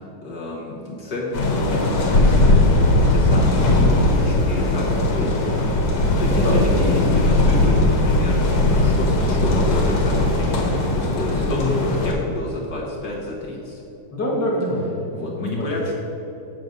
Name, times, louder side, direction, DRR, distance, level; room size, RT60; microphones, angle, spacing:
voice 1, 0.2-5.3 6.2-6.5 6.8-13.8 15.1-16.0, left 1 dB, 55° left, -4 dB, 1.7 m, -30 dB
sound 1, 1.3-12.1, left 2 dB, 80° left, 2.2 m, -18 dB
voice 2, 3.6-3.9 6.2-7.0 11.3-11.8 14.1-15.7, left 1 dB, 10° left, -4 dB, 1.5 m, -25 dB
7.7 x 5.3 x 6.2 m, 2.9 s
omnidirectional pair, 2.4 m